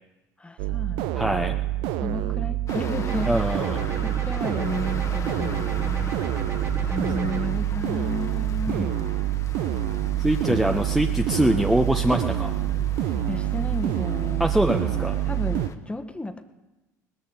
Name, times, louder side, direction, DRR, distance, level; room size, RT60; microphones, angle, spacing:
voice 1, 0.4-1.5 2.0-3.6 4.0-5.7 6.8-9.1 10.5-10.6 13.0-14.5 15.2-16.4, left 2 dB, 10° left, 7 dB, 1.3 m, -33 dB
sound 1, 0.6-15.7, right 15 dB, 65° right, 0.6 m, -27 dB
voice 2, 1.1-1.6 3.3-3.8 8.7-8.9 10.2-12.5 14.4-15.2, right 1 dB, 5° right, 4 dB, 0.8 m, -23 dB
sound 2, 2.7-15.7, left 4 dB, 35° left, 1.3 m, -38 dB
sound 3, 3.1-7.5, right 4 dB, 30° right, 1.4 m, -36 dB
19.5 x 13.5 x 4.0 m, 1.1 s
hypercardioid pair, 70°, 9 cm